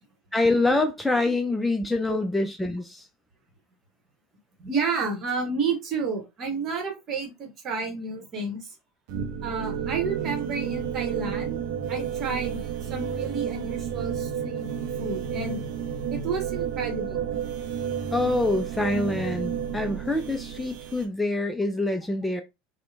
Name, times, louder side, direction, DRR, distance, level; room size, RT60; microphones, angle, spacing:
voice 1, 0.3-3.1 18.1-22.4, left 2 dB, 5° left, 0.3 m, -25 dB
voice 2, 4.6-8.7 9.4-14.7 15.0-15.6 16.1-17.4, right 4 dB, 40° right, 1.0 m, -31 dB
sound 1, 9.1-21.1, right 8 dB, 55° right, 0.5 m, -31 dB
2.8 x 2.1 x 2.3 m
figure-of-eight pair, 75°, 0 cm